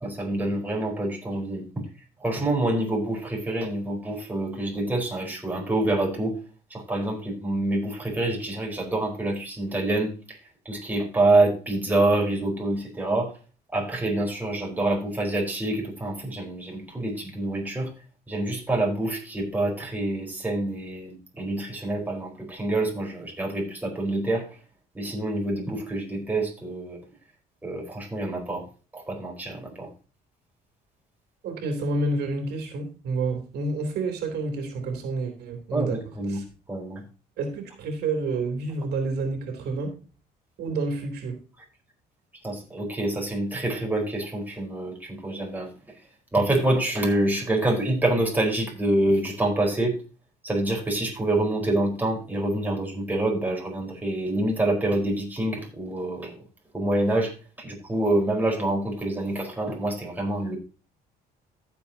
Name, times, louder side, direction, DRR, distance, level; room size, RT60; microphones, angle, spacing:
voice 1, 0.0-1.8 2.2-6.4 6.7-10.4 10.6-13.3 13.7-17.9 18.3-24.5 24.9-27.0 27.6-28.6 28.9-29.9 35.7-36.4 36.7-37.0 42.4-45.7 46.3-50.0 50.4-56.3 56.7-60.6, right 1 dB, 10° right, -1 dB, 4.6 m, -26 dB
voice 2, 31.4-36.0 36.3-36.4 37.4-39.9 40.6-41.3, right 3 dB, 75° right, 4 dB, 3.3 m, -29 dB
15.0 x 7.6 x 2.9 m, 0.35 s
cardioid pair, 110°, 17 cm